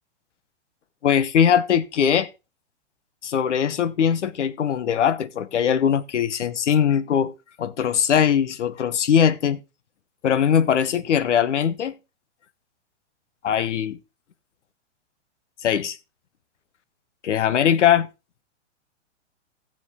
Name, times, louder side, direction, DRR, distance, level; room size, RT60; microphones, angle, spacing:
voice 1, 1.0-2.3 3.2-9.6 10.2-12.0 13.4-14.0 15.6-16.0 17.2-18.1, left 8 dB, 85° left, 1.0 m, -21 dB
15.0 x 7.5 x 3.6 m
hypercardioid pair, 140°, 35 cm